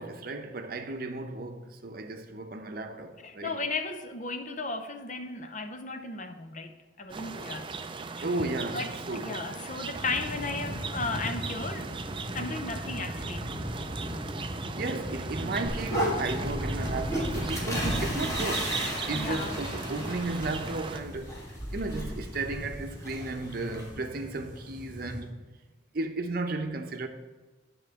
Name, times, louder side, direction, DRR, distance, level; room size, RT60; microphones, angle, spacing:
voice 1, 0.0-3.6 8.2-9.4 14.7-18.8 19.1-21.3 21.7-25.4 25.9-27.1, right 2 dB, 55° right, 0.7 m, -34 dB
voice 2, 3.2-7.7 8.2-8.3 8.7-11.9 12.3-13.5 15.4-15.5 19.1-19.6, left 3 dB, 40° left, 0.7 m, -35 dB
sound 1, 7.1-21.0, right 4 dB, 25° right, 0.4 m, -38 dB
sound 2, 9.9-25.2, equal, 5° right, 3.2 m, -39 dB
sound 3, 15.7-23.9, equal, 15° left, 1.7 m, -34 dB
9.9 x 3.8 x 6.8 m
head